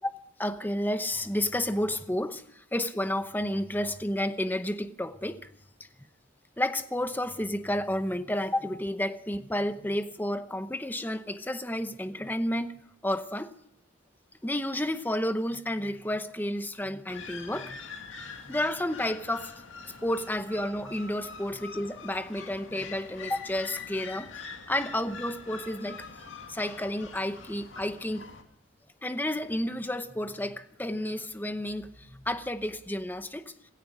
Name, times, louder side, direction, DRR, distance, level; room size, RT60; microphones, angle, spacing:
voice 1, 0.4-5.5 6.6-12.8 13.0-13.5 14.4-17.8 18.2-26.1 26.5-28.3 29.0-33.5, left 1 dB, 10° left, 0.8 m, -31 dB
sound 1, 17.1-28.4, left 5 dB, 80° left, 2.0 m, -44 dB
17.0 x 16.0 x 4.9 m
head